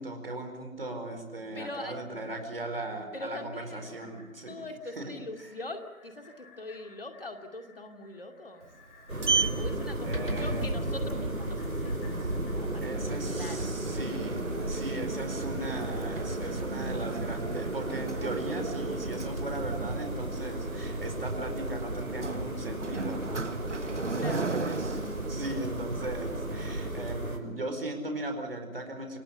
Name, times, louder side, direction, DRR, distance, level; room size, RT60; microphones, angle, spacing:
voice 1, 0.0-4.6 5.0-5.1 10.0-10.7 12.8-23.5 23.9-25.0 25.3-29.2, right 1 dB, 40° right, 6 dB, 4.8 m, -38 dB
sound 1, 1.3-13.9 14.2-14.3, left 3 dB, 10° left, 2.9 m, -58 dB
voice 2, 1.5-2.0 3.1-3.9 4.5-8.7 9.5-13.8 24.0-24.5 25.6-25.8, left 2 dB, 40° left, 5 dB, 2.6 m, -42 dB
Sliding door, 8.6-26.9, right 4 dB, 55° right, 1.4 m, -37 dB
sound 2, 9.1-27.4, right 1 dB, 85° right, 5.8 m, -34 dB
28.5 x 16.5 x 9.9 m, 1.2 s
figure-of-eight pair, 165°, 41 cm